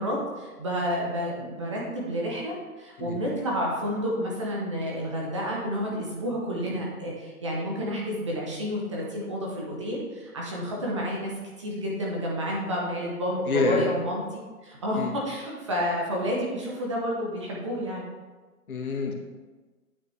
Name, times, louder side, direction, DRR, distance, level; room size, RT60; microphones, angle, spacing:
voice 1, 0.0-11.3 11.6-18.0, equal, 20° right, -3 dB, 0.9 m, -30 dB
voice 2, 13.5-13.9 15.0-15.1 18.7-19.1, left 4 dB, 70° left, 2 dB, 1.5 m, -26 dB
9.1 x 6.0 x 3.4 m, 1.3 s
hypercardioid pair, 160°, 45 cm